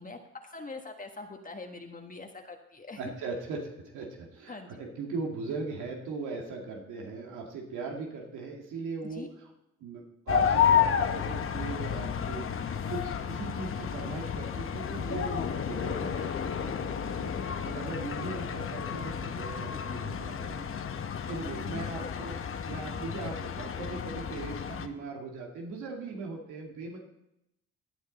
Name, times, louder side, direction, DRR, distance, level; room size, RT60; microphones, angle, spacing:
voice 1, 0.0-3.1 4.5-4.8 9.0-9.3 19.9-20.0 21.6-22.2, left 3 dB, 25° left, 3 dB, 1.4 m, -43 dB
voice 2, 3.0-9.2 9.8-20.7 20.9-22.4 22.7-27.0, right 3 dB, 85° right, 0 dB, 2.3 m, -39 dB
sound 1, 10.3-24.9, left 8 dB, 45° left, 1.0 m, -31 dB
16.5 x 9.2 x 4.1 m, 0.86 s
cardioid pair, 90°, 30 cm